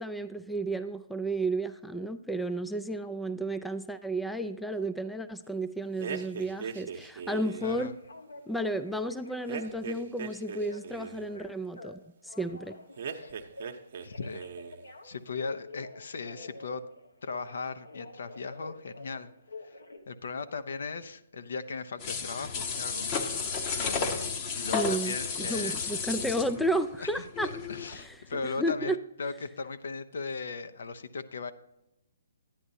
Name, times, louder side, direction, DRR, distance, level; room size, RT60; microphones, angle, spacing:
voice 1, 0.0-7.9 8.5-12.8 24.7-27.5 27.9-28.2 28.4-29.0, right 1 dB, 5° left, 12 dB, 0.3 m, -32 dB
sound 1, 6.0-7.8 9.5-11.3 13.0-14.1 14.3-14.9, right 6 dB, 50° right, 0.8 m, -39 dB
Telephone, 7.5-10.0 10.4-11.9 12.2-13.8 14.1-17.5 17.8-20.0, left 3 dB, 85° left, 1.3 m, -47 dB
voice 2, 7.6-8.0 13.2-13.3 14.0-14.4 15.0-16.8 17.2-19.3 19.6-19.8 20.1-23.1 23.8-25.8 27.0-27.2 27.7-31.5, left 4 dB, 65° left, 10 dB, 0.7 m, -38 dB
sound 2, 22.0-28.0 28.3-28.4, left 5 dB, 30° left, 0.9 m, -33 dB
10.0 x 9.9 x 2.7 m, 0.87 s
figure-of-eight pair, 135°, 0 cm